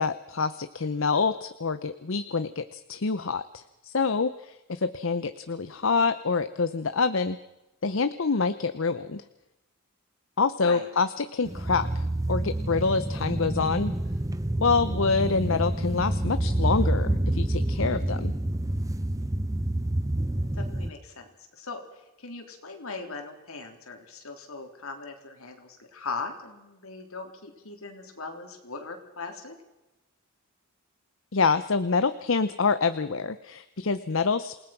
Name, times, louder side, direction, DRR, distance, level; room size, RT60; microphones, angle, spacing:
voice 1, 0.0-7.4 7.8-9.2 10.4-13.9 14.6-18.3 31.3-34.5, left 4 dB, 65° left, 12 dB, 0.7 m, -26 dB
voice 2, 10.6-10.9 20.6-29.5, left 3 dB, 80° left, 3 dB, 3.7 m, -39 dB
sound 1, 11.5-20.9, right 1 dB, 15° right, 0.8 m, -28 dB
28.0 x 18.5 x 6.0 m, 0.97 s
head